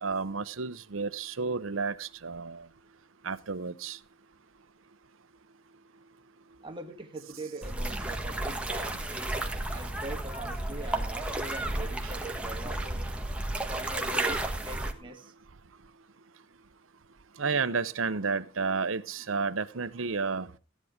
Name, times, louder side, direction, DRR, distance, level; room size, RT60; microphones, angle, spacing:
voice 1, 0.0-2.7 3.2-4.0 12.0-12.1 17.4-20.5, right 4 dB, 75° right, 0.8 m, -31 dB
voice 2, 6.6-13.1 13.7-15.3, right 2 dB, 25° right, 1.8 m, -42 dB
sound 1, 7.6-14.9, right 1 dB, 5° right, 1.4 m, -32 dB
14.5 x 10.5 x 5.1 m
head